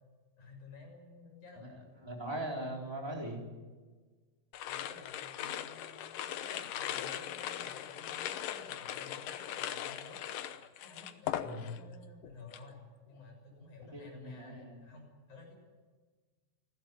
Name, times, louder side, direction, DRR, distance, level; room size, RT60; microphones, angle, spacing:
voice 1, 0.4-1.8 4.7-10.3 10.8-15.6, left 3 dB, 50° left, 1 dB, 8.0 m, -53 dB
voice 2, 2.0-3.4 11.4-11.7 13.9-14.8, right 1 dB, 5° right, 0 dB, 3.9 m, -40 dB
sound 1, 4.5-11.9 12.2-12.7, left 11 dB, 70° left, 2.4 m, -39 dB
29.5 x 12.5 x 9.4 m, 1.4 s
omnidirectional pair, 4.4 m